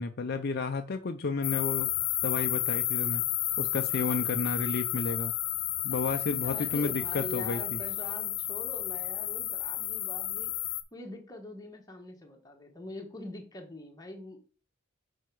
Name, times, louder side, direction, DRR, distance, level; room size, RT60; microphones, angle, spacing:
voice 1, 0.0-1.9 2.2-3.2 3.6-5.3 5.8-7.8, left 4 dB, 50° left, 6 dB, 0.5 m, -32 dB
sound 1, 1.4-10.8, left 14 dB, 80° left, 0.8 m, -31 dB
voice 2, 6.4-14.5, left 1 dB, 15° left, 2 dB, 1.2 m, -44 dB
6.5 x 4.3 x 4.7 m, 0.39 s
head